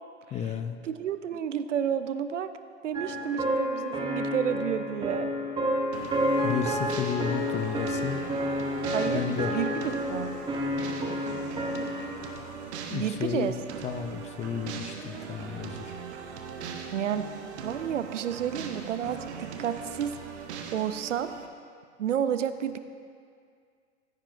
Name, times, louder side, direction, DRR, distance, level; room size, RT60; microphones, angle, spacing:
voice 1, 0.3-0.8 6.4-8.2 9.1-9.6 12.9-15.9, left 7 dB, 20° left, 8 dB, 0.4 m, -32 dB
voice 2, 0.8-2.5 2.8-5.3 8.9-9.7 10.1-10.4 12.9-13.5 16.9-17.3 17.6-20.5 20.7-21.3 22.0-22.8, right 9 dB, 80° right, 11 dB, 0.6 m, -30 dB
sound 1, 2.9-12.4, equal, 15° right, 1.1 m, -30 dB
sound 2, 5.9-21.5, right 6 dB, 65° right, 1.2 m, -40 dB
15.0 x 10.0 x 2.6 m, 2.2 s
hypercardioid pair, 100°, 36 cm